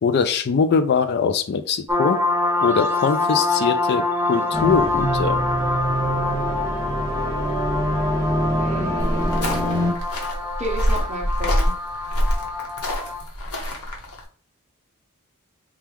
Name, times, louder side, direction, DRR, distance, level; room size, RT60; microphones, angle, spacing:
voice 1, 0.0-2.2 2.6-5.4, left 5 dB, 50° left, 0.3 m, -22 dB
sound 1, 1.9-13.2, left 2 dB, 10° right, 0.5 m, -25 dB
sound 2, 4.5-9.9, equal, 15° left, 0.9 m, -25 dB
voice 2, 8.5-9.3 10.6-11.7, equal, 30° right, 0.8 m, -31 dB
sound 3, 9.0-14.2, equal, 80° left, 1.1 m, -25 dB
4.5 x 2.4 x 3.4 m
head